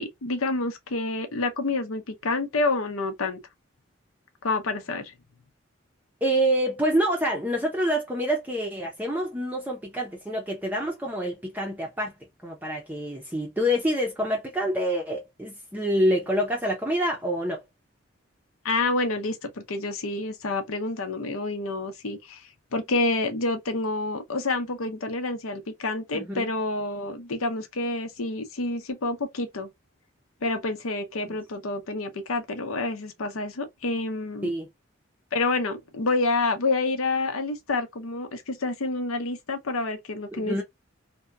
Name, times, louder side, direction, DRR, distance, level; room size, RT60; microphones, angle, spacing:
voice 1, 0.0-3.4 4.4-5.1 18.6-22.4 22.7-29.7 30.4-34.5 35.3-40.6, left 3 dB, 90° left, 0.7 m, -28 dB
voice 2, 6.2-12.1 12.4-17.6 26.1-26.5 31.3-31.4 34.4-34.7 40.3-40.6, equal, 10° right, 0.5 m, -27 dB
2.7 x 2.1 x 2.2 m
head